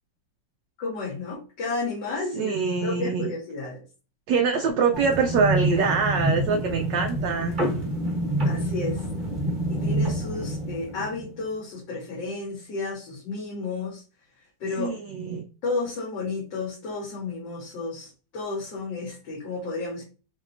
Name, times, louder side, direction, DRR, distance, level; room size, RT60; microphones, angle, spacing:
voice 1, 0.8-2.5 2.8-3.8 8.4-9.0 9.7-14.0 14.6-14.9 15.6-20.0, left 3 dB, 60° left, -3 dB, 1.5 m, -32 dB
voice 2, 2.3-3.3 4.3-7.5 14.8-15.5, right 5 dB, 75° right, 4 dB, 1.0 m, -24 dB
sound 1, 4.9-11.4, right 1 dB, 35° right, 0.8 m, -27 dB
5.6 x 2.8 x 2.6 m, 0.35 s
omnidirectional pair, 2.4 m